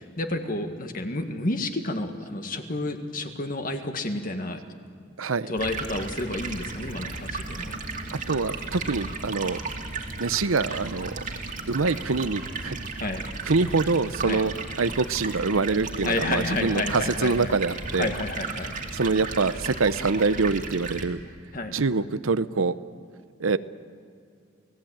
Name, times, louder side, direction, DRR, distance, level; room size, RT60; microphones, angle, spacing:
voice 1, 0.0-4.6 5.5-7.7 13.0-13.3 14.2-14.4 16.0-17.5 18.0-18.7 21.5-21.8, left 2 dB, 45° left, 6 dB, 1.9 m, -30 dB
voice 2, 5.2-5.5 8.3-9.6 10.2-11.2 11.7-12.8 13.4-18.1 18.9-21.2 21.7-22.7 23.4-23.6, right 4 dB, 85° right, 14 dB, 0.8 m, -25 dB
Stream, 5.6-21.0, right 3 dB, 40° right, 2.3 m, -35 dB
29.0 x 18.0 x 8.8 m, 2.3 s
head